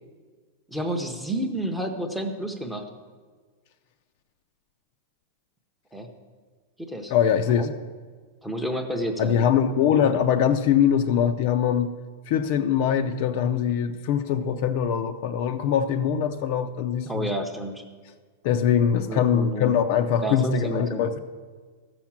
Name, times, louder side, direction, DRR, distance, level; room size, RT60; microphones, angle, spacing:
voice 1, 0.7-2.9 5.9-6.1 6.9-7.1 7.5-7.7 8.4-9.4 17.0-17.8 19.1-19.7 20.2-21.0, right 1 dB, ahead, 4 dB, 0.7 m, -30 dB
voice 2, 7.1-7.7 9.2-11.9 12.3-17.3 18.4-21.2, left 8 dB, 40° left, 8 dB, 0.5 m, -22 dB
14.0 x 5.9 x 7.3 m, 1.5 s
supercardioid pair, 175°, 0 cm